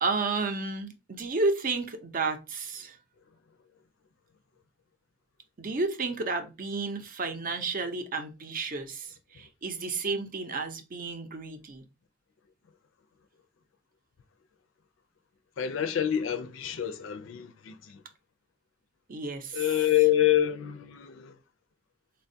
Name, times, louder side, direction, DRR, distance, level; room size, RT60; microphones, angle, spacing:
voice 1, 0.0-3.0 5.6-11.8 19.1-19.7, right 3 dB, 45° right, 0.6 m, -32 dB
voice 2, 15.6-18.0 19.5-21.4, left 11 dB, 75° left, 0.4 m, -27 dB
4.2 x 2.2 x 2.6 m
head